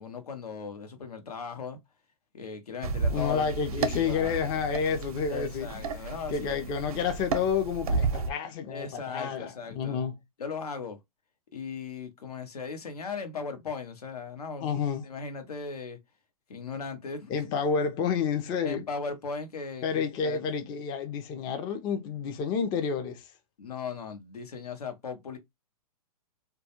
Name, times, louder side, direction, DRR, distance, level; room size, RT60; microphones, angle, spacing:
voice 1, 0.0-1.8 2.3-3.5 3.8-4.4 5.3-6.5 8.7-10.0 10.4-11.0 11.5-14.8 15.0-16.0 16.5-17.3 18.6-20.4 23.6-25.4, left 5 dB, 90° left, 0.8 m, -38 dB
sound 1, 2.8-8.3, right 4 dB, 70° right, 0.6 m, -32 dB
voice 2, 3.1-10.1 14.6-15.0 17.3-18.9 19.8-23.3, left 6 dB, 25° left, 0.4 m, -30 dB
2.2 x 2.1 x 2.8 m
hypercardioid pair, 135°, 19 cm